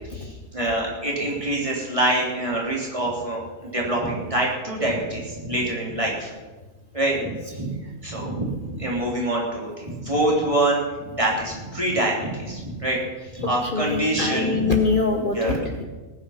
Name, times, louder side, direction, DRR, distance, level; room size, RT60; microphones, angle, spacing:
voice 1, 0.1-6.3 6.9-7.7 8.0-14.6 15.3-15.8, right 1 dB, 25° right, -3 dB, 3.4 m, -25 dB
voice 2, 13.6-15.7, left 3 dB, 40° left, 4 dB, 1.0 m, -23 dB
18.5 x 9.6 x 5.8 m, 1.3 s
omnidirectional pair, 1.4 m